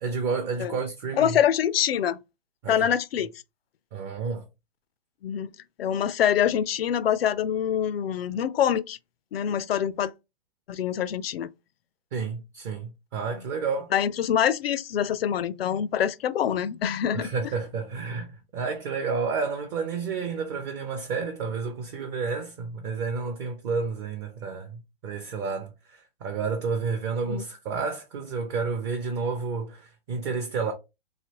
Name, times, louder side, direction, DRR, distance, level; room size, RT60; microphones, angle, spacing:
voice 1, 0.0-1.4 2.6-2.9 3.9-4.4 12.1-13.9 17.1-30.7, right 5 dB, 30° right, 0.5 m, -30 dB
voice 2, 1.2-2.2 2.7-3.3 5.2-5.5 5.8-9.0 9.3-10.1 10.7-11.5 13.9-17.3 27.3-27.4, left 9 dB, 75° left, 0.5 m, -25 dB
3.2 x 2.7 x 2.8 m
hypercardioid pair, 130°, 30 cm